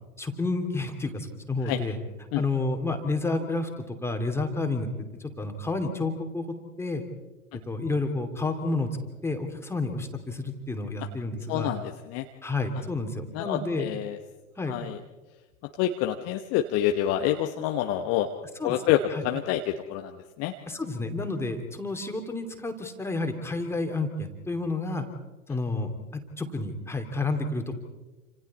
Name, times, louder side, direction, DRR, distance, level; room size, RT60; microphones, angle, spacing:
voice 1, 0.2-2.0 2.3-4.9 5.2-7.0 7.5-8.9 9.2-11.7 12.4-13.9 14.6-14.8 18.6-18.8 19.1-19.2 20.7-25.1 25.5-27.8, left 3 dB, 5° left, 4 dB, 2.8 m, -30 dB
voice 2, 11.5-12.2 13.3-14.2 14.7-15.0 15.8-18.3 18.6-20.5, left 11 dB, 35° left, 5 dB, 1.3 m, -27 dB
28.5 x 27.0 x 4.3 m, 1.2 s
figure-of-eight pair, 95°, 42 cm